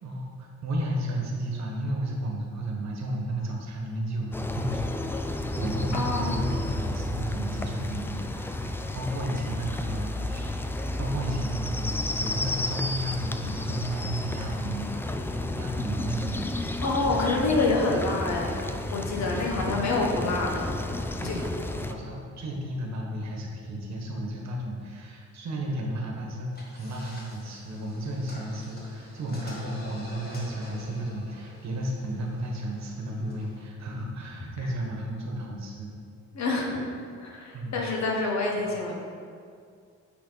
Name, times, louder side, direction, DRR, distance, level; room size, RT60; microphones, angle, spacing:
voice 1, 0.0-10.5 11.0-15.2 15.5-16.4 21.2-35.9 37.5-37.8, right 1 dB, 65° right, 0 dB, 1.4 m, -33 dB
sound 1, 4.3-21.9, left 2 dB, 10° left, 0.3 m, -32 dB
voice 2, 5.9-6.4 16.8-20.8 21.2-21.4 36.3-36.9 37.2-38.9, left 3 dB, 65° left, -1 dB, 1.4 m, -27 dB
sound 2, 26.5-33.6, left 1 dB, 30° left, 1.6 m, -48 dB
8.4 x 4.1 x 4.1 m, 2.2 s
cardioid pair, 90°, 30 cm